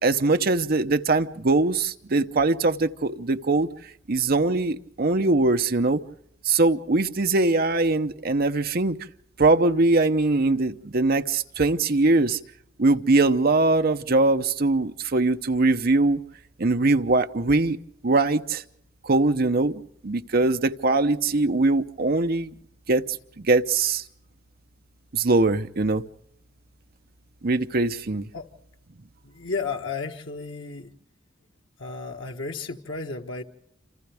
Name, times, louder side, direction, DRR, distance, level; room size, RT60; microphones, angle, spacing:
voice 1, 0.0-3.7 4.1-6.0 6.4-9.0 9.4-12.4 12.8-16.2 16.6-17.8 18.0-18.6 19.0-22.5 22.9-23.0 23.4-24.0 25.1-26.0 27.4-28.3, right 3 dB, 50° right, 8 dB, 0.9 m, -22 dB
voice 2, 29.2-30.9 31.8-33.4, left 4 dB, 85° left, 2 dB, 1.5 m, -33 dB
28.5 x 27.0 x 3.5 m, 0.74 s
head